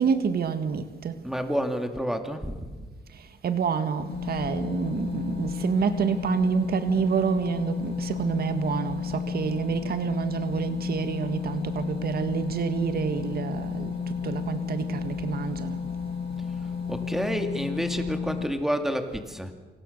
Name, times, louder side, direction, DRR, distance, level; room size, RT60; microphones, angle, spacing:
voice 1, 0.0-1.2 3.4-13.9 14.2-15.8, right 6 dB, 60° right, 9 dB, 1.7 m, -28 dB
voice 2, 1.2-2.8 16.9-19.5, equal, ahead, 6 dB, 2.3 m, -29 dB
sound 1, 4.1-18.4, left 6 dB, 80° left, 7.0 m, -32 dB
28.5 x 27.0 x 6.7 m, 1.4 s
cardioid pair, 135°, 18 cm